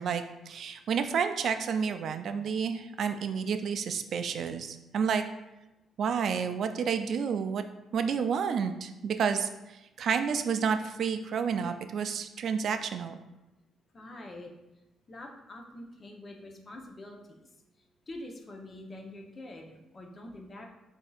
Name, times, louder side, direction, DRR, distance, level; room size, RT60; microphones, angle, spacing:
voice 1, 0.0-5.2 6.0-7.6 7.9-13.2, right 6 dB, 65° right, 9 dB, 0.3 m, -30 dB
voice 2, 13.9-14.5 15.1-17.5 18.1-20.7, left 1 dB, 35° left, 2 dB, 0.8 m, -45 dB
7.5 x 2.7 x 2.4 m, 0.98 s
cardioid pair, 90°, 0 cm